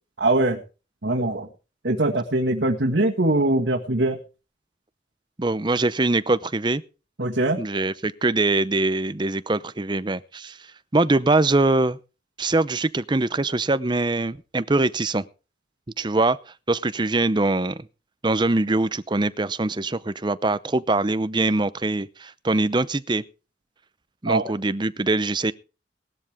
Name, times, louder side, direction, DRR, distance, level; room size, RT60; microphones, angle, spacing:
voice 1, 0.2-0.6 1.0-1.5 1.8-4.2 7.2-7.6 24.3-24.4, right 2 dB, 75° right, 1.8 m, -22 dB
voice 2, 5.4-6.8 7.6-10.6 10.9-12.0 12.4-15.2 16.0-16.4 16.7-17.8 18.2-23.2 24.2-25.5, right 2 dB, 25° right, 0.6 m, -23 dB
18.5 x 12.5 x 3.5 m
head